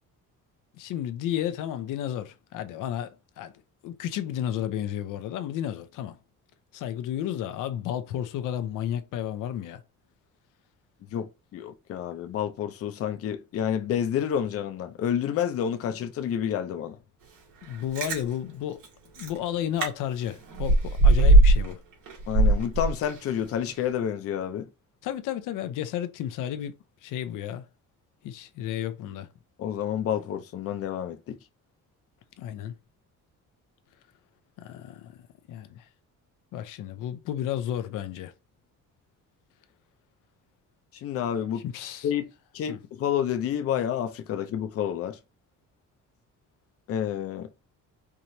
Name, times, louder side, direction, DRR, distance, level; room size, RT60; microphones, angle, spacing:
voice 1, 0.7-3.5 3.8-6.2 6.7-9.8 17.6-18.8 19.2-21.8 25.0-26.7 27.0-27.7 28.2-29.3 32.4-32.7 34.6-35.2 35.5-35.9 36.5-38.3 41.6-42.1 42.7-42.8, left 10 dB, 85° left, 0.7 m, -32 dB
voice 2, 11.1-17.0 22.3-24.7 29.6-31.4 40.9-41.7 42.0-45.2 46.9-47.5, left 9 dB, 50° left, 0.6 m, -29 dB
Chewing mastication, 17.7-18.2 18.8-18.9 19.2-19.4 19.8-19.9 20.2-21.7 22.1-23.3 23.7-23.8, right 2 dB, 90° right, 2.1 m, -19 dB
4.9 x 2.9 x 2.7 m
cardioid pair, 175°, 31 cm